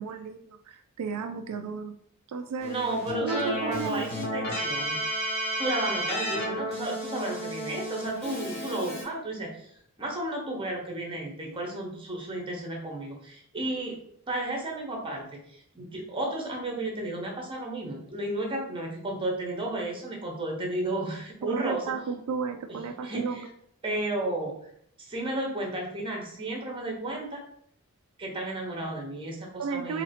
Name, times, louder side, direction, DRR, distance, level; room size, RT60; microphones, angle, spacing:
voice 1, 0.0-2.0 2.3-2.8 3.2-4.0 21.4-23.5 29.6-30.0, right 5 dB, 75° right, 6 dB, 0.3 m, -33 dB
Keyboard (musical), 2.6-9.0, equal, 45° left, 1.1 m, -32 dB
voice 2, 2.7-5.0 5.6-9.7 10.0-14.0 14.3-21.9 22.7-23.5 23.8-24.5 25.0-27.4 28.2-30.0, right 1 dB, 25° right, 0 dB, 0.9 m, -33 dB
2.9 x 2.7 x 4.2 m, 0.67 s
head